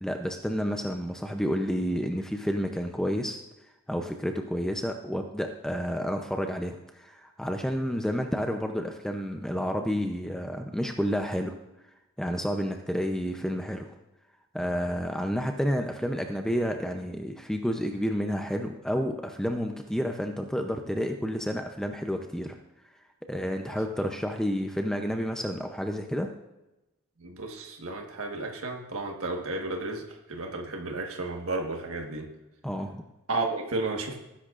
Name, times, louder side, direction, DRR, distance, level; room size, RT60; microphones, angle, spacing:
voice 1, 0.0-3.4 3.9-11.5 12.2-13.9 14.5-22.6 23.3-26.3 32.6-33.0, equal, 5° left, 4 dB, 0.6 m, -30 dB
voice 2, 27.2-32.3 33.3-34.2, right 2 dB, 75° right, 2 dB, 1.5 m, -33 dB
18.5 x 10.0 x 2.5 m, 0.96 s
head